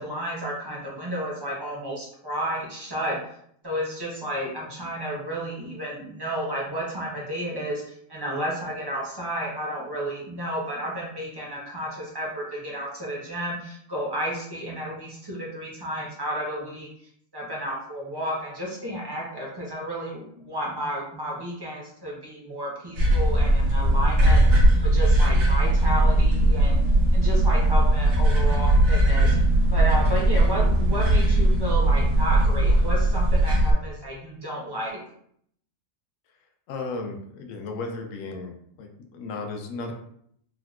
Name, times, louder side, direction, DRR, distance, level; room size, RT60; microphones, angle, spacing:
voice 1, 0.0-3.2 3.6-7.8 8.1-16.9 17.3-26.8 27.1-29.4 29.7-35.0, equal, 25° right, -4 dB, 0.5 m, -32 dB
sound 1, 22.9-33.7, right 1 dB, 80° right, 1.3 m, -19 dB
voice 2, 36.7-39.9, left 3 dB, 75° left, 3 dB, 0.9 m, -35 dB
3.6 x 2.2 x 2.3 m, 0.68 s
omnidirectional pair, 1.4 m